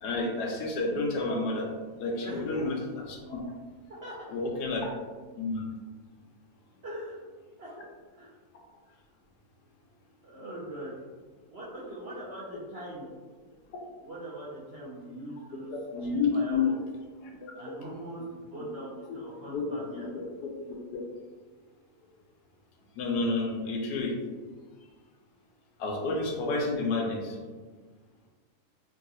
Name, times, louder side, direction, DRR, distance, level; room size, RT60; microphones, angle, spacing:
voice 1, 0.0-1.7 2.0-2.8 3.1-3.4 4.3-4.9 5.4-5.7 15.7-16.7 17.2-17.5 19.5-19.6 20.6-21.0 23.0-24.1 25.8-27.4, left 3 dB, 90° left, 0 dB, 1.2 m, -30 dB
voice 2, 2.2-2.7 4.0-4.1 6.8-7.2 7.6-7.8 8.2-8.3 10.2-10.9 11.5-13.1 13.8-15.7 16.0-16.8 17.5-20.1, right 1 dB, 65° right, -7 dB, 0.6 m, -41 dB
3.3 x 2.3 x 2.7 m, 1.4 s
omnidirectional pair, 1.7 m